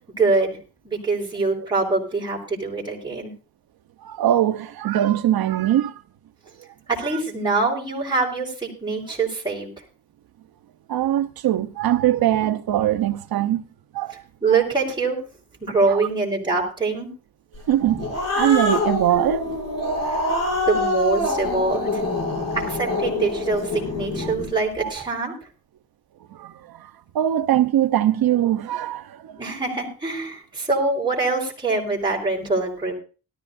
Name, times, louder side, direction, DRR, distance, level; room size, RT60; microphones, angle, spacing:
voice 1, 0.2-0.6 0.8-3.3 6.9-9.7 14.4-15.2 15.6-17.1 20.1-20.2 20.7-22.0 22.5-25.3 29.4-32.9, right 3 dB, 15° right, 4.6 m, -24 dB
voice 2, 4.0-6.0 7.1-7.2 10.9-13.7 13.9-14.2 15.9-16.0 17.7-19.6 19.8-20.9 24.2-24.3 24.8-24.9 26.3-29.4, right 12 dB, 80° right, 1.0 m, -22 dB
Growling, 17.7-24.5, left 2 dB, 45° left, 7.4 m, -25 dB
18.0 x 13.5 x 2.7 m
wide cardioid pair, 140°, 36 cm